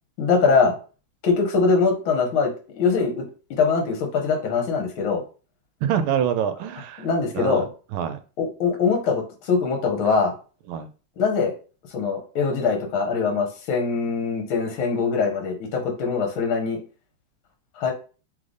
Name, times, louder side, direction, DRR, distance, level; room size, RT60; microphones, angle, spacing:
voice 1, 0.2-0.7 1.2-3.2 3.6-5.2 7.0-7.7 8.4-10.3 11.2-11.5 11.9-16.8 17.8-17.9, left 5 dB, 70° left, 2 dB, 1.8 m, -22 dB
voice 2, 5.8-7.1 7.3-8.2 10.7-10.9, right 9 dB, 75° right, 10 dB, 1.4 m, -26 dB
3.8 x 3.3 x 3.8 m, 0.35 s
omnidirectional pair, 2.4 m